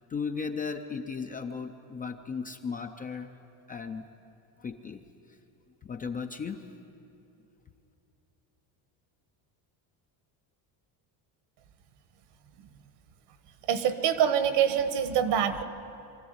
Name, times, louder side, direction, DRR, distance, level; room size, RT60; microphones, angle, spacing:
voice 1, 0.1-3.3 3.7-4.1 4.6-5.1 5.8-6.6, left 5 dB, 20° left, 6 dB, 0.4 m, -36 dB
voice 2, 13.6-15.6, right 8 dB, 60° right, 11 dB, 1.4 m, -25 dB
24.0 x 13.5 x 9.4 m, 2.8 s
cardioid pair, 165°, 46 cm